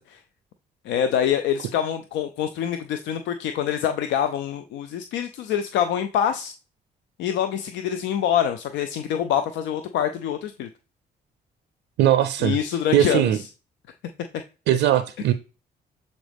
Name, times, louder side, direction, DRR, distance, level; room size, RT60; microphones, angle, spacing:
voice 1, 0.8-6.5 7.2-10.7 12.4-13.5, left 9 dB, 80° left, 0.5 m, -25 dB
voice 2, 12.0-12.6 12.9-13.4 14.7-15.3, right 11 dB, 85° right, 0.5 m, -19 dB
7.1 x 4.0 x 3.4 m
supercardioid pair, 55°, 19 cm